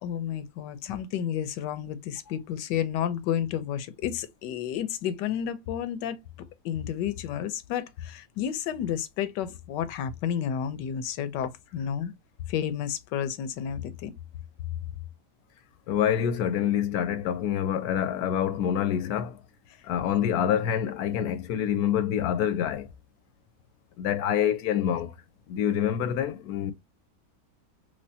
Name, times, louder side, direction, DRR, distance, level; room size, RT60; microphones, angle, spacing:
voice 1, 0.0-6.2 6.6-12.1 12.5-14.1, left 9 dB, 90° left, 1.3 m, -31 dB
voice 2, 15.9-19.4 19.8-22.9 24.0-25.1 25.5-26.7, left 9 dB, 75° left, 1.0 m, -26 dB
3.2 x 3.1 x 2.6 m
omnidirectional pair, 1.8 m